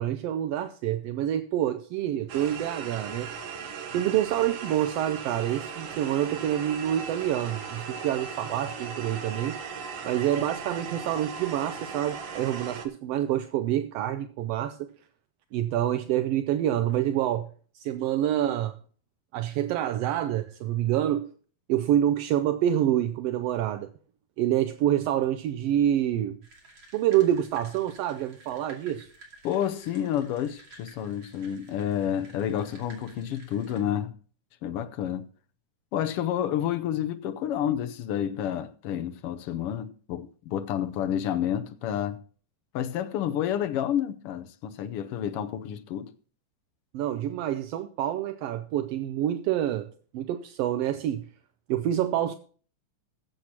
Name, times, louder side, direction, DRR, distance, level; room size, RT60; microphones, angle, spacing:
voice 1, 0.0-3.3 3.9-9.6 10.0-14.9 15.5-18.8 19.3-21.3 21.7-23.9 24.4-26.4 26.9-29.1 46.9-51.3 51.7-52.4, right 11 dB, 80° right, 1.4 m, -27 dB
sound 1, 2.3-12.9, right 5 dB, 60° right, 1.9 m, -38 dB
sound 2, 26.4-33.8, right 2 dB, 45° right, 3.2 m, -53 dB
voice 2, 29.4-34.1 34.6-35.3 35.9-42.2 42.7-46.1, left 10 dB, 70° left, 1.4 m, -29 dB
20.5 x 7.8 x 2.9 m
omnidirectional pair, 3.3 m